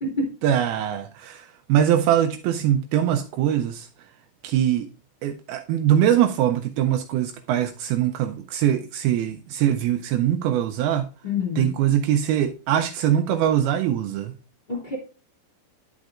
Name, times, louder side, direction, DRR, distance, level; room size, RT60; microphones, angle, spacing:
voice 1, 0.4-3.9 4.4-4.9 5.2-11.1 11.6-14.3, right 10 dB, 80° right, 2.4 m, -22 dB
voice 2, 11.2-11.7 14.7-15.0, left 3 dB, 20° left, 1.2 m, -27 dB
11.0 x 6.3 x 2.4 m
omnidirectional pair, 4.5 m